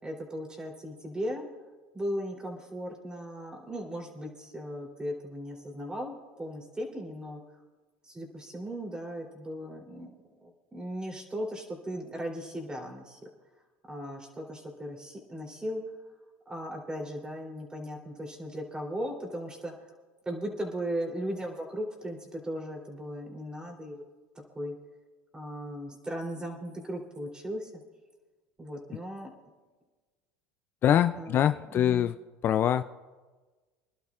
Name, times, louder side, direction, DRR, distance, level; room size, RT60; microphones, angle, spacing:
voice 1, 0.0-1.5 1.9-7.6 8.0-10.1 10.4-13.2 13.9-15.8 16.4-19.9 20.2-24.0 24.5-24.7 25.3-27.7 28.6-29.3 31.2-31.4 31.7-32.1, equal, 15° right, 2 dB, 3.3 m, -37 dB
voice 2, 30.8-32.2 32.4-32.8, left 10 dB, 40° left, 11 dB, 0.4 m, -24 dB
26.0 x 11.5 x 2.5 m, 1.3 s
supercardioid pair, 105°, 5 cm